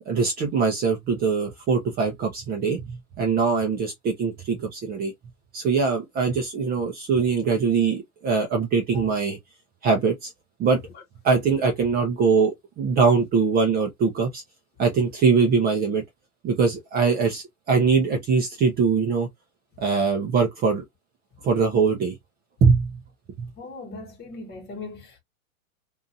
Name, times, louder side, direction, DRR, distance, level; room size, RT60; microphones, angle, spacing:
voice 1, 0.1-5.1 5.5-9.4 9.8-10.3 10.6-10.8 11.2-14.4 14.8-16.0 16.4-19.3 19.8-20.8 21.4-22.2 22.6-23.0 23.4-23.5, right 5 dB, 20° right, 0.7 m, -22 dB
voice 2, 23.6-25.2, left 3 dB, 20° left, 1.1 m, -39 dB
2.8 x 2.6 x 2.5 m
hypercardioid pair, 125°, 44 cm